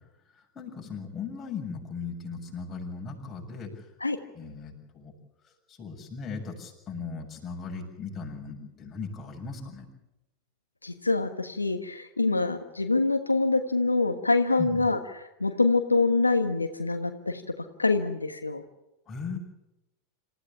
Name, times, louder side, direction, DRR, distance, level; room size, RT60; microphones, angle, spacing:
voice 1, 0.3-3.8 4.3-5.1 5.7-9.9 14.6-14.9 19.1-19.4, left 5 dB, 25° left, 0 dB, 7.2 m, -38 dB
voice 2, 10.8-17.4 17.8-18.6, left 3 dB, 90° left, 7 dB, 1.4 m, -25 dB
27.5 x 15.5 x 8.8 m, 0.92 s
figure-of-eight pair, 90°, 0 cm